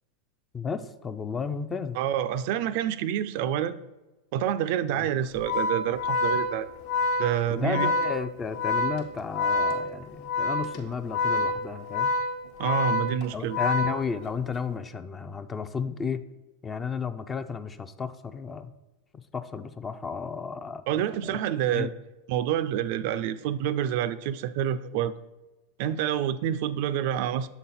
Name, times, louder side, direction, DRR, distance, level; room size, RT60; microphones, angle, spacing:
voice 1, 0.5-2.0 4.9-5.1 7.5-12.1 13.3-16.2 16.6-18.7 19.1-21.4 21.7-21.9, left 6 dB, 20° left, 11 dB, 0.4 m, -33 dB
voice 2, 2.0-3.8 4.3-6.7 7.2-7.9 12.6-13.6 20.9-21.9 22.3-25.1 25.8-27.5, right 10 dB, 60° right, 13 dB, 0.3 m, -27 dB
Organ, 5.3-14.5, left 3 dB, 65° left, 1.0 m, -27 dB
7.0 x 4.0 x 4.2 m, 1.1 s
hypercardioid pair, 115°, 0 cm